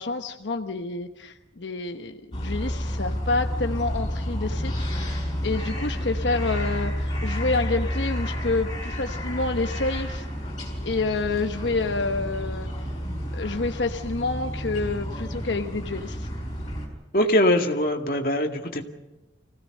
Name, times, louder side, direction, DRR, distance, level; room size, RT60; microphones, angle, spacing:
voice 1, 0.0-4.7 5.0-5.1 5.4-10.3 10.9-12.7 13.3-16.3, left 3 dB, 90° left, 5 dB, 1.1 m, -28 dB
sound 1, 2.3-16.9, equal, 25° left, 5.8 m, -30 dB
voice 2, 17.1-18.8, left 1 dB, 50° left, 3 dB, 2.1 m, -22 dB
25.5 x 16.5 x 6.6 m, 1.1 s
head